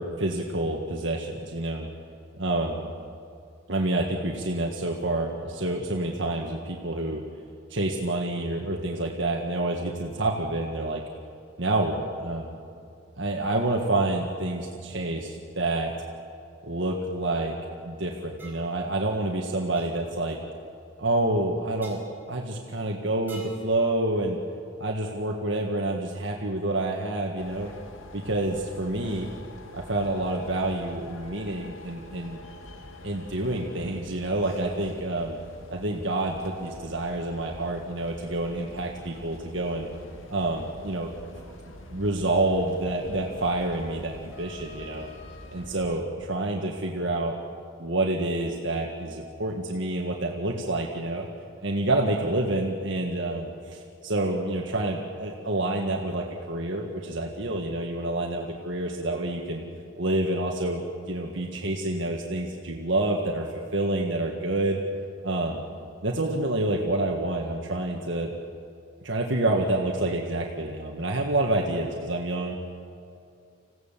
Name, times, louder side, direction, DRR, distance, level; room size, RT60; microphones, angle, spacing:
voice 1, 0.0-1.9 2.4-2.9 3.7-7.2 7.7-11.0 11.6-12.6 13.2-15.9 16.6-17.5 17.8-20.4 21.0-22.0 22.3-24.4 24.8-27.7 28.1-29.3 29.7-32.4 33.0-35.4 35.7-39.9 40.3-41.1 41.9-45.1 45.5-47.4 47.8-51.3 51.6-59.6 60.0-60.8 61.1-63.5 63.7-64.8 65.2-65.6 66.0-68.3 69.0-72.5, right 2 dB, 65° right, 0 dB, 1.7 m, -28 dB
sound 1, 18.4-18.7 19.7-19.9 21.8-22.0 23.3-23.7, right 2 dB, 10° right, 4.2 m, -46 dB
sound 2, 27.4-46.0, left 1 dB, 80° left, 2.1 m, -45 dB
27.0 x 16.0 x 7.4 m, 2.5 s
head